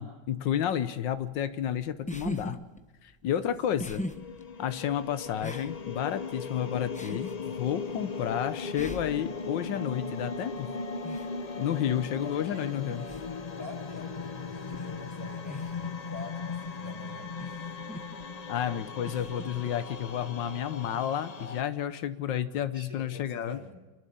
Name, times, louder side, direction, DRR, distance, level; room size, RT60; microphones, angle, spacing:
voice 1, 0.0-2.6 3.0-4.0 4.6-10.7 11.6-13.0 18.5-23.6, left 10 dB, 80° left, 12 dB, 1.5 m, -31 dB
sound 1, 1.0-20.7, left 1 dB, 5° left, 0.6 m, -44 dB
sound 2, 3.9-21.6, left 4 dB, 50° left, 0.4 m, -38 dB
voice 2, 12.2-12.7 13.5-17.3 22.5-23.8, left 2 dB, 10° right, 0 dB, 3.7 m, -46 dB
28.5 x 11.5 x 8.6 m, 1.2 s
omnidirectional pair, 2.0 m